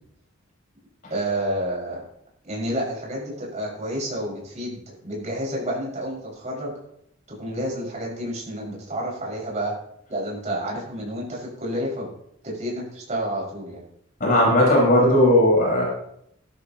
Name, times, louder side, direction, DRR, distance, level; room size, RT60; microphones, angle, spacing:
voice 1, 1.1-2.0 2.4-6.8 7.3-9.7 10.1-12.1 12.4-13.8, right 1 dB, 35° right, -4 dB, 6.2 m, -29 dB
voice 2, 14.2-15.8, left 1 dB, 45° left, -4 dB, 5.5 m, -17 dB
17.0 x 12.5 x 3.1 m, 0.73 s
head